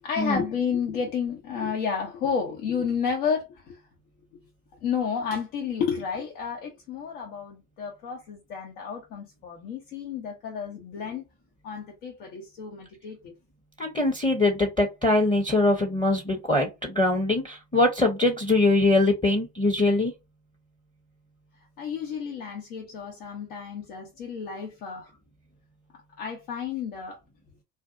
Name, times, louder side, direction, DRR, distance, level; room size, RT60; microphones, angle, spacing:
voice 1, 0.0-3.8 4.8-11.2 11.6-13.3 21.8-25.1 26.2-27.2, left 6 dB, 80° left, 0.7 m, -31 dB
voice 2, 13.8-20.1, left 2 dB, 10° left, 0.6 m, -22 dB
2.6 x 2.3 x 2.4 m
hypercardioid pair, 55°, 46 cm